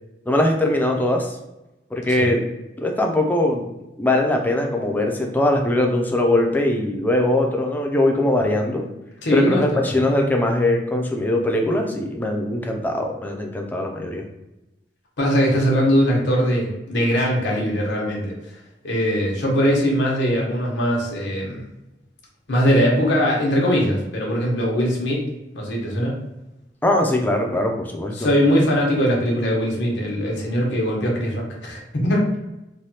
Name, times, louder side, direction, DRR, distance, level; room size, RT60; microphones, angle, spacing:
voice 1, 0.3-1.4 1.9-2.4 2.8-3.7 4.0-8.9 9.3-14.3 26.8-28.3, left 1 dB, 10° left, 2 dB, 0.4 m, -21 dB
voice 2, 9.2-9.9 15.2-18.3 18.8-21.6 22.5-25.2 25.5-26.2 28.2-32.3, equal, 80° left, -2 dB, 0.9 m, -21 dB
3.3 x 2.2 x 2.7 m, 0.95 s
head